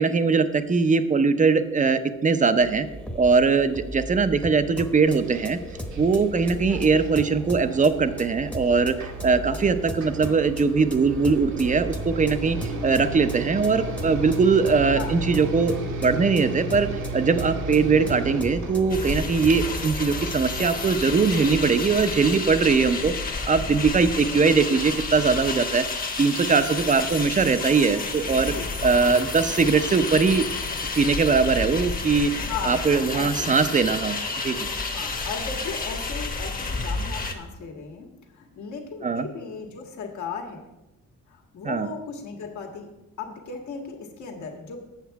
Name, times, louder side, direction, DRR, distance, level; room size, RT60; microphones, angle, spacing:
voice 1, 0.0-2.9 3.1-5.6 6.0-23.1 23.5-25.9 26.2-28.5 28.8-30.5 30.9-32.3 32.6-34.2 34.4-34.7 39.0-39.3 41.6-41.9, right 4 dB, 25° right, 11 dB, 0.6 m, -21 dB
sound 1, 2.6-20.2, equal, 5° left, 0.9 m, -37 dB
sound 2, 5.0-22.1, right 2 dB, 75° right, 1.4 m, -35 dB
sound 3, 18.9-37.3, left 3 dB, 30° left, 1.1 m, -30 dB
voice 2, 32.5-33.5 34.9-40.7 41.3-42.9 43.2-44.9, left 5 dB, 70° left, 2 dB, 1.7 m, -36 dB
8.1 x 6.9 x 4.6 m, 0.98 s
cardioid pair, 90°, 30 cm